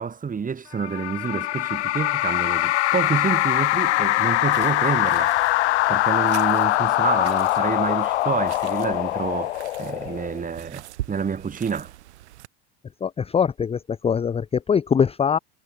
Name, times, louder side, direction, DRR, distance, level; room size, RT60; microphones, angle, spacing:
voice 1, 0.0-5.3 5.9-11.9, right 6 dB, 25° right, 6.9 m, -28 dB
sound 1, 0.8-10.5, left 16 dB, 80° left, 3.2 m, -22 dB
sound 2, 3.0-12.5, right 15 dB, 80° right, 6.3 m, -43 dB
voice 2, 13.0-15.4, left 7 dB, 15° left, 0.7 m, -22 dB
hypercardioid pair, 100°, 33 cm